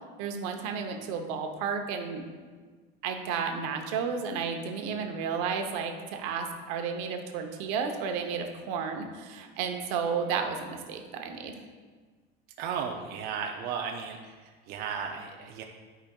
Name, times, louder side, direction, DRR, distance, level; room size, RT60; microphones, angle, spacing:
voice 1, 0.2-2.2 3.0-11.6, right 6 dB, 80° right, 4 dB, 0.8 m, -32 dB
voice 2, 12.6-15.6, right 6 dB, 45° right, 1 dB, 0.5 m, -35 dB
11.5 x 5.0 x 2.3 m, 1.4 s
cardioid pair, 175°, 21 cm